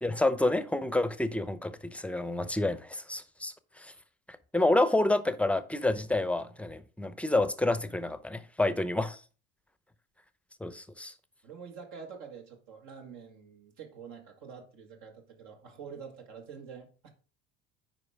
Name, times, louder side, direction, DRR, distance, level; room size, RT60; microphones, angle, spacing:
voice 1, 0.0-3.9 4.5-9.2 10.6-11.1, left 2 dB, 5° left, 0.7 m, -29 dB
voice 2, 11.4-17.1, right 6 dB, 65° right, 1.8 m, -47 dB
9.7 x 4.6 x 3.5 m
hypercardioid pair, 70°, 31 cm